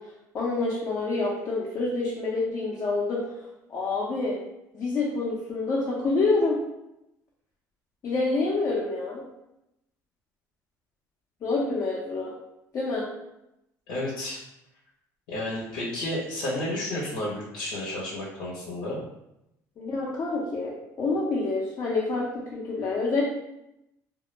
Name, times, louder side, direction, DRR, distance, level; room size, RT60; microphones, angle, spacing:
voice 1, 0.3-3.3 3.7-4.4 4.7-6.6 8.0-9.2 11.4-12.3 12.7-13.1 19.8-20.7 21.0-23.2, left 3 dB, 45° left, -4 dB, 0.5 m, -27 dB
voice 2, 13.9-14.4 15.3-19.0, left 1 dB, 90° left, -6 dB, 0.7 m, -31 dB
2.1 x 2.0 x 3.1 m, 0.87 s
cardioid pair, 105°, 7 cm